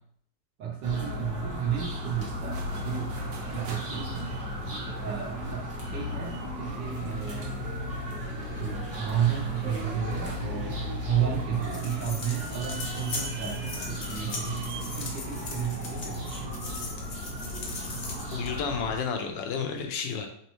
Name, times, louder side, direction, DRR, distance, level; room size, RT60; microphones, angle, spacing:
voice 1, 0.6-4.4 5.0-7.5 8.6-16.5, right 9 dB, 70° right, -1 dB, 1.5 m, -32 dB
sound 1, 0.8-19.0, left 1 dB, 45° right, 1.1 m, -36 dB
sound 2, 2.3-16.6, right 7 dB, 90° right, 1.4 m, -41 dB
sound 3, 11.6-18.6, left 3 dB, 55° left, 1.0 m, -39 dB
voice 2, 18.3-20.3, left 6 dB, 80° left, 4 dB, 1.3 m, -31 dB
4.3 x 3.1 x 3.0 m, 0.65 s
omnidirectional pair, 2.0 m